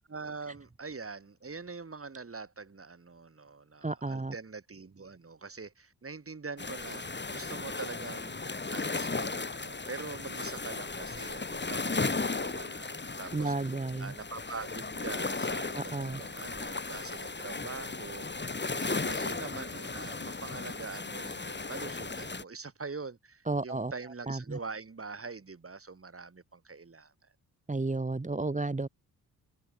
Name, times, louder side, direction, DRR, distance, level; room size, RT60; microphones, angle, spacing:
voice 1, 0.1-13.7 14.0-27.1, right 4 dB, 35° right, 6.0 m, -44 dB
voice 2, 3.8-4.3 13.3-14.1 15.7-16.2 23.5-23.9 24.3-24.6 27.7-28.9, right 2 dB, 20° right, 2.0 m, -32 dB
sound 1, 6.6-22.4, left 3 dB, 25° left, 4.3 m, -36 dB
cardioid pair, 65°, 39 cm